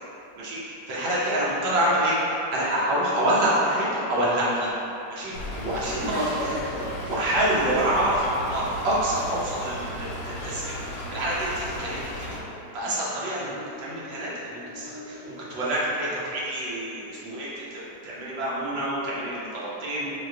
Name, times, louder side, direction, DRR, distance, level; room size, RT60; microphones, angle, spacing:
voice 1, 0.4-2.1 2.5-4.8 5.1-6.7 7.0-10.7 11.1-12.3 12.7-13.5 13.8-15.2 15.5-20.1, right 1 dB, 80° right, -8 dB, 1.6 m, -27 dB
Race car auto racing / Accelerating revving vroom, 5.0-10.0 10.8-11.2 11.6-17.5, equal, 55° right, 1.2 m, -41 dB
Stream / Trickle dribble, 5.3-12.4, left 1 dB, 80° left, 1.3 m, -35 dB
5.9 x 2.4 x 2.4 m, 2.8 s
omnidirectional pair, 2.0 m